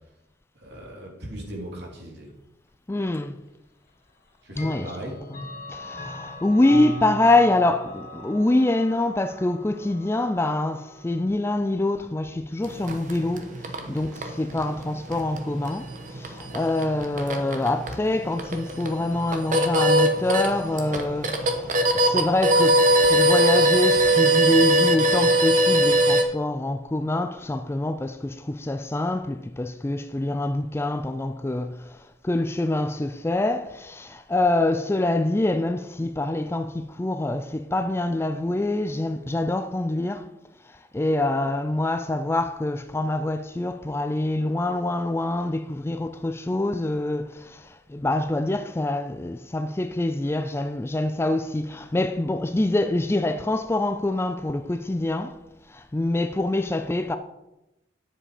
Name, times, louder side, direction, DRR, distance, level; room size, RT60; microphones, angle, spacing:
voice 1, 0.5-2.3 4.4-5.2, right 1 dB, 60° right, 2.8 m, -38 dB
voice 2, 2.9-3.4 4.6-4.9 5.7-40.3 40.6-55.4 55.7-57.2, left 2 dB, 15° left, 0.3 m, -25 dB
Clock, 3.1-3.2 4.5-11.3, left 1 dB, 45° left, 2.6 m, -39 dB
sound 1, 12.6-26.2, right 1 dB, 40° right, 1.1 m, -22 dB
9.8 x 7.6 x 4.9 m
head